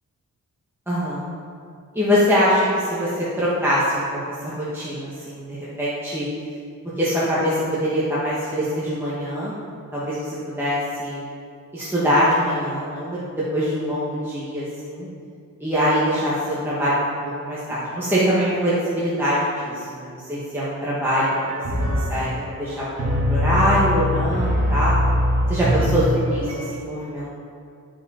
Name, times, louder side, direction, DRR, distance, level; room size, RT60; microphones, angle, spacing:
voice 1, 0.9-1.2 1.9-4.0 4.4-6.2 7.0-9.5 9.9-11.2 11.7-13.2 13.5-15.1 15.6-21.3 21.9-22.3 22.6-25.0 25.5-27.3, equal, 5° right, -10 dB, 1.4 m, -23 dB
sound 1, 21.1-26.7, left 1 dB, 45° right, 2.0 m, -23 dB
11.5 x 5.0 x 4.3 m, 2.4 s
wide cardioid pair, 145°, 33 cm